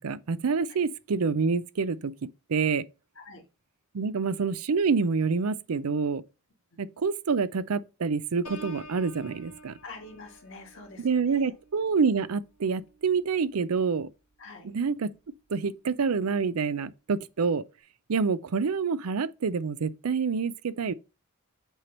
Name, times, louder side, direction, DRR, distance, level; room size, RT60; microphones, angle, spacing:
voice 1, 0.0-2.9 3.9-6.2 6.8-9.8 11.0-14.1 14.6-15.1 15.5-17.6 18.1-20.9, right 5 dB, 85° right, 0.5 m, -27 dB
Piano, 8.4-14.1 14.5-14.9, right 1 dB, 80° left, 1.8 m, -50 dB
voice 2, 9.8-11.5 14.4-14.7, left 3 dB, 60° left, 1.8 m, -46 dB
8.0 x 3.0 x 5.3 m
head